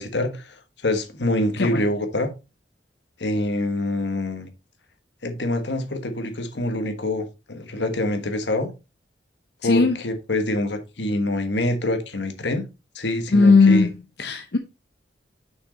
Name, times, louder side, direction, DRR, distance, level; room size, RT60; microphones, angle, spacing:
voice 1, 0.0-2.3 3.2-4.5 5.2-8.7 9.6-12.7 12.9-13.9, left 1 dB, 80° left, 1.5 m, -25 dB
voice 2, 9.6-10.0 13.3-13.9 14.2-14.6, left 4 dB, 65° left, 0.7 m, -17 dB
6.4 x 6.1 x 4.1 m
head